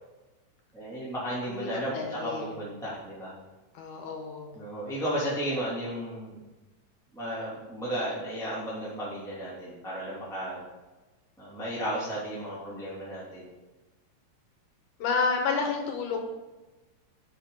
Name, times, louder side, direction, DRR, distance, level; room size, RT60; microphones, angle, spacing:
voice 1, 0.7-1.9 2.2-3.3 4.5-6.4 7.1-10.6 11.4-13.5, right 1 dB, ahead, -9 dB, 2.7 m, -34 dB
voice 2, 1.4-2.6 3.7-4.6 15.0-16.2, left 4 dB, 90° left, 2 dB, 3.0 m, -30 dB
12.5 x 6.0 x 4.1 m, 1.1 s
omnidirectional pair, 3.4 m